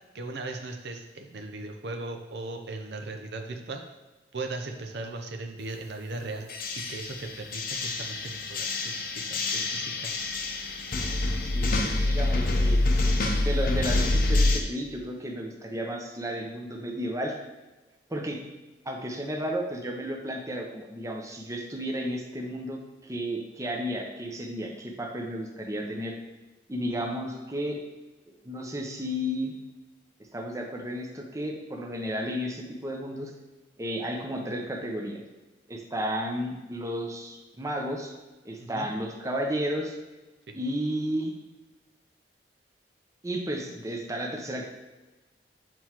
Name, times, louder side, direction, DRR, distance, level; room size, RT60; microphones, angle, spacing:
voice 1, 0.1-3.8 4.3-6.5 6.9-10.1 26.9-27.0 38.6-38.9 40.5-40.6, right 2 dB, 65° right, 4 dB, 0.6 m, -38 dB
sound 1, 6.5-14.6, left 2 dB, 55° left, 0.7 m, -26 dB
voice 2, 12.1-12.8 13.4-17.4 18.1-18.4 18.9-26.2 26.7-27.8 28.4-29.5 30.3-33.3 33.8-35.2 35.7-38.1 38.4-39.9 40.5-41.3 43.2-44.6, equal, 20° right, 2 dB, 0.7 m, -33 dB
7.7 x 4.4 x 3.0 m, 1.2 s
head